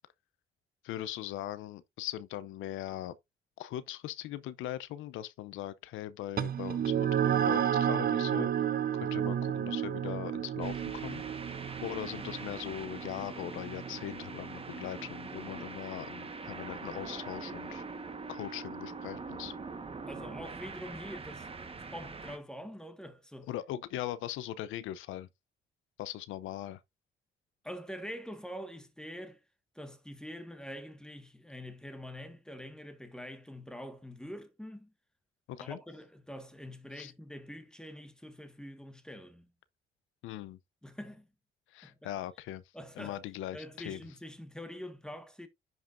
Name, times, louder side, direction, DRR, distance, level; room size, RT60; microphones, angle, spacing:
voice 1, 0.8-3.2 3.6-8.5 8.9-17.8 18.3-19.5 23.5-25.3 26.0-26.8 35.5-35.8 36.9-37.1 40.2-40.6 41.7-42.6 43.0-44.0, left 13 dB, 90° left, 0.6 m, -40 dB
sound 1, 6.4-15.2, right 9 dB, 50° right, 0.8 m, -32 dB
sound 2, 10.6-22.4, right 4 dB, 30° right, 1.3 m, -43 dB
voice 2, 20.1-23.5 27.6-29.4 29.7-34.9 35.6-39.5 40.8-41.3 41.8-42.1 42.7-43.2 43.5-45.5, equal, 5° left, 1.5 m, -45 dB
10.5 x 5.4 x 2.6 m
cardioid pair, 90°, 20 cm